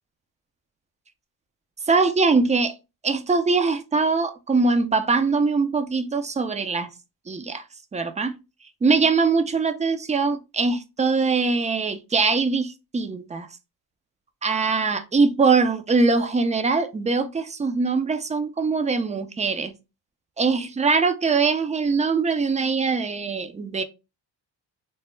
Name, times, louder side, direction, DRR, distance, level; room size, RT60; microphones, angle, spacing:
voice 1, 1.9-2.8 3.0-6.9 7.3-7.6 7.9-8.4 8.8-13.5 14.4-19.7 20.4-23.8, right 4 dB, 20° right, 0.3 m, -22 dB
3.3 x 2.0 x 3.0 m
cardioid pair, 80°, 45 cm